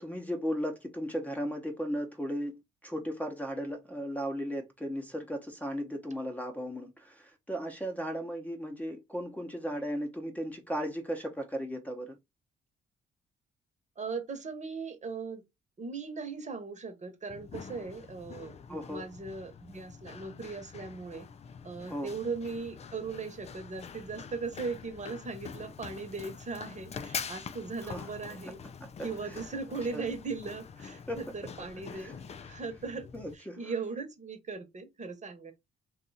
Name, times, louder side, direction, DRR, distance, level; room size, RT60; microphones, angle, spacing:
voice 1, 0.0-12.2 18.7-19.1 21.9-22.1 27.8-28.1 28.8-29.4 29.9-30.0 31.1-31.2 32.0-32.1 32.5-32.6 33.1-33.7, equal, 5° left, 0.9 m, -36 dB
voice 2, 14.0-15.4 15.8-21.3 21.6-28.6 29.0-33.1 33.6-35.5, right 4 dB, 35° right, 1.1 m, -38 dB
Run, 17.3-33.3, left 6 dB, 35° left, 0.4 m, -45 dB
2.6 x 2.4 x 4.0 m
cardioid pair, 90°, 20 cm